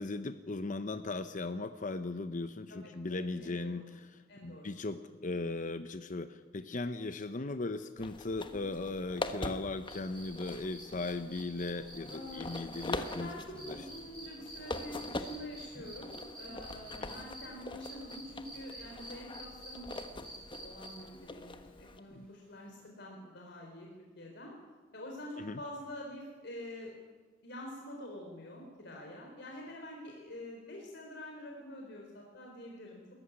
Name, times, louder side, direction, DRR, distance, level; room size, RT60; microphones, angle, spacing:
voice 1, 0.0-13.3 13.7-13.8 17.0-17.1 22.1-22.3 25.4-25.6, left 3 dB, 45° left, 10 dB, 0.8 m, -38 dB
voice 2, 2.7-3.8 4.3-4.7 5.2-5.3 12.1-12.6 12.9-23.9 24.2-24.5 24.9-26.9 27.4-33.0, left 1 dB, 65° left, 0 dB, 4.1 m, -47 dB
sound 1, 8.0-22.0, left 2 dB, 25° left, 1.1 m, -43 dB
sound 2, 9.9-17.5 17.8-21.2 22.8-22.9, right 1 dB, 5° left, 6.1 m, -49 dB
21.0 x 14.5 x 9.9 m, 1.4 s
head